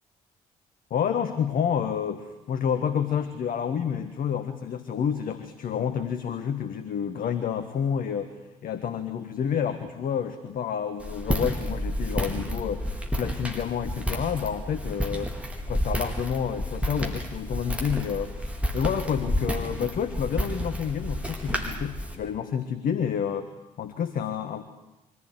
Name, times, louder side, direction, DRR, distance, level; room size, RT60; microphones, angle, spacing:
voice 1, 0.9-15.4 15.7-23.5 23.8-24.6, left 8 dB, 50° left, 9 dB, 1.5 m, -29 dB
Walk footsteps, 11.0-22.1, equal, 5° right, 4.4 m, -30 dB
24.0 x 16.0 x 9.9 m, 0.99 s
figure-of-eight pair, 45°, 18 cm